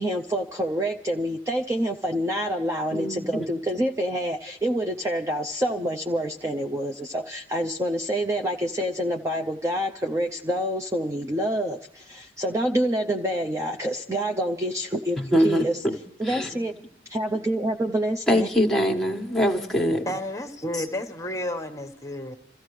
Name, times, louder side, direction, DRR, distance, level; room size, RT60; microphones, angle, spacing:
voice 1, 0.0-15.8 16.2-16.7 17.1-18.5, equal, 15° right, 0.6 m, -27 dB
voice 2, 2.9-3.5 15.2-15.9 16.2-16.5 18.3-20.0, equal, ahead, 1.4 m, -23 dB
voice 3, 20.1-22.3, left 1 dB, 20° left, 1.2 m, -31 dB
28.5 x 15.0 x 3.2 m
head